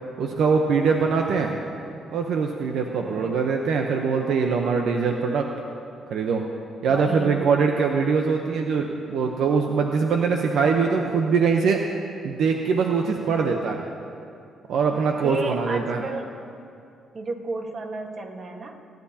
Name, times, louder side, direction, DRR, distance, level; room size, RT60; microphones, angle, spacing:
voice 1, 0.2-1.6 2.1-5.5 6.1-6.4 6.8-11.8 12.2-13.8 14.7-16.0, right 5 dB, 75° right, 2 dB, 0.9 m, -22 dB
voice 2, 2.9-3.4 6.9-7.5 15.2-16.3 17.1-18.8, right 3 dB, 45° right, 3 dB, 1.5 m, -32 dB
29.0 x 10.5 x 2.9 m, 2.5 s
cardioid pair, 90°, 0 cm